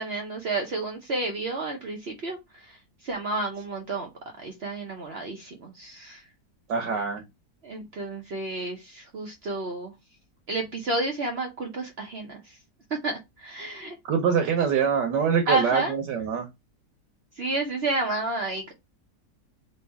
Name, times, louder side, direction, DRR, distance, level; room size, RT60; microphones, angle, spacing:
voice 1, 0.0-2.4 3.0-4.1 4.4-6.2 7.6-9.9 10.5-12.4 13.0-14.0 15.5-16.0 17.4-18.7, right 2 dB, 55° right, 0.7 m, -30 dB
voice 2, 6.7-7.2 14.0-16.5, right 6 dB, 80° right, 1.5 m, -24 dB
3.2 x 3.0 x 4.5 m
omnidirectional pair, 1.9 m